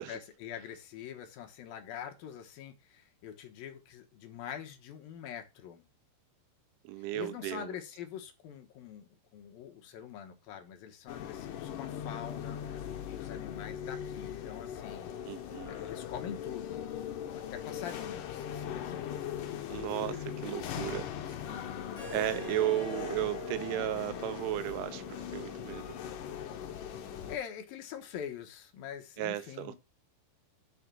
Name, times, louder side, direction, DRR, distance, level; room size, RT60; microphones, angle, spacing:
voice 1, 0.0-5.8 7.1-12.6 13.0-15.1 15.7-16.8 17.3-19.0 20.0-20.2 21.4-22.5 26.9-29.7, left 9 dB, 70° left, 2.4 m, -44 dB
voice 2, 6.8-7.7 15.3-15.8 19.7-21.4 22.1-25.9 29.2-29.8, right 14 dB, 90° right, 3.3 m, -35 dB
sound 1, 11.1-27.4, left 9 dB, 90° left, 1.8 m, -40 dB
Harp, 21.9-27.0, equal, 25° left, 3.3 m, -45 dB
6.9 x 4.9 x 6.2 m
omnidirectional pair, 5.3 m